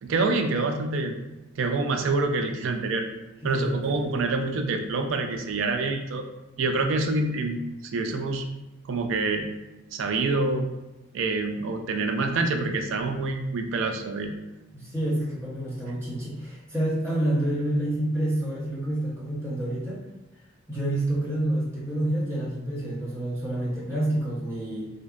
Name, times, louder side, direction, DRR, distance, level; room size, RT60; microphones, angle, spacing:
voice 1, 0.0-1.2 1.6-3.0 3.4-6.3 6.6-7.6 7.9-8.5 8.9-9.5 9.9-10.7 11.1-14.3, right 3 dB, 60° right, 5 dB, 0.3 m, -26 dB
voice 2, 3.4-4.1 14.7-20.0 20.7-24.9, right 1 dB, 15° right, -7 dB, 0.8 m, -28 dB
2.7 x 2.1 x 2.4 m, 1.0 s
head